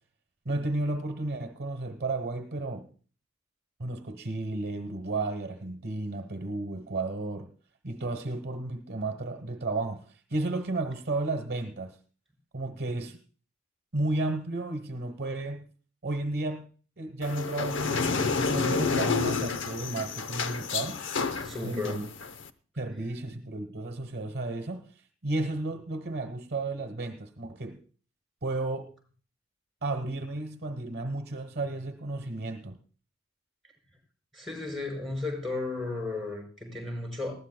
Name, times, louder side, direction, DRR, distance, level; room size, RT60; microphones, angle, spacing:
voice 1, 0.4-2.9 3.8-7.5 7.8-12.0 12.5-13.2 13.9-15.6 16.0-16.7 17.0-21.0 21.6-22.1 22.8-27.8 28.4-28.9 29.8-32.8, right 2 dB, 50° right, 1.1 m, -33 dB
sound 1, 17.2-22.5, left 4 dB, 65° left, 0.8 m, -30 dB
voice 2, 21.4-22.0 34.3-37.3, left 3 dB, ahead, 5.4 m, -34 dB
20.0 x 15.0 x 2.2 m
head